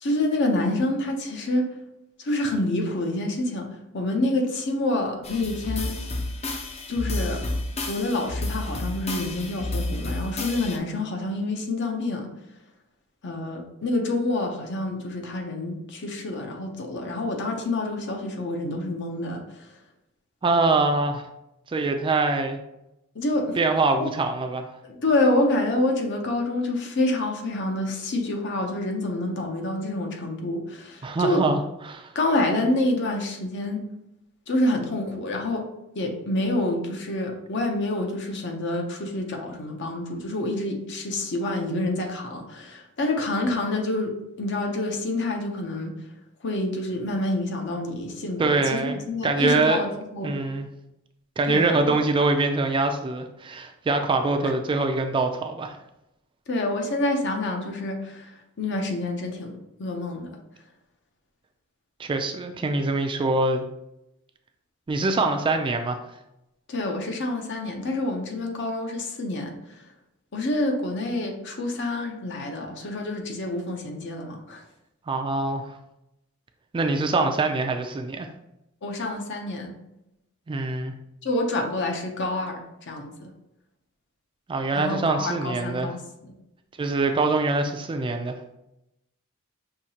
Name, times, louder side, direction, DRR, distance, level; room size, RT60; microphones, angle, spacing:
voice 1, 0.0-1.7 2.2-3.7 3.9-5.9 6.9-7.4 7.9-12.3 13.2-19.4 23.1-23.6 24.8-31.5 32.1-33.8 34.5-35.7 35.9-44.1 44.4-45.9 46.4-50.3 51.5-52.0 56.5-58.3 58.6-60.4 66.7-69.5 70.3-74.6 78.8-79.7 81.2-83.3 84.7-86.3, left 2 dB, 60° left, 3 dB, 0.7 m, -27 dB
sound 1, 5.2-10.8, left 2 dB, 30° left, 0.5 m, -31 dB
voice 2, 20.4-21.3 21.7-22.6 23.6-24.7 31.0-32.1 48.4-49.0 49.2-49.8 50.2-50.7 51.4-55.8 62.0-63.7 64.9-66.0 75.1-75.7 76.7-78.3 80.5-80.9 84.5-85.9 86.8-88.4, right 3 dB, 25° right, 6 dB, 0.3 m, -24 dB
5.7 x 2.8 x 2.8 m, 0.87 s
head